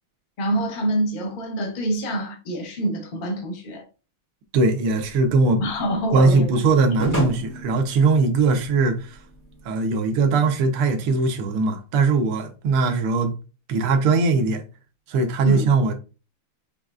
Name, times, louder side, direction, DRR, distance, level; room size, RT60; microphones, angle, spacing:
voice 1, 0.4-3.8 5.6-6.5 15.4-15.7, right 1 dB, 55° left, 0.5 m, -26 dB
voice 2, 4.5-5.6 6.1-9.2 9.6-13.3 13.7-14.6 15.1-15.9, right 3 dB, 80° right, 1.6 m, -20 dB
sound 1, 4.9-9.7, equal, 10° left, 1.9 m, -32 dB
6.2 x 3.1 x 2.3 m
omnidirectional pair, 2.4 m